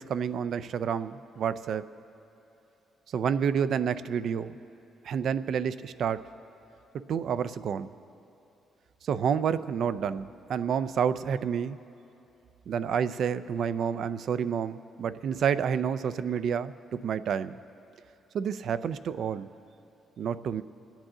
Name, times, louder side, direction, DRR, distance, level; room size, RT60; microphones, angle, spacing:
voice 1, 0.0-1.9 3.1-4.6 5.0-6.2 7.1-7.9 9.0-11.8 12.7-17.6 18.3-19.5 20.2-20.6, right 7 dB, 65° right, 14 dB, 0.4 m, -29 dB
24.5 x 8.9 x 3.8 m, 2.8 s
cardioid pair, 90°, 0 cm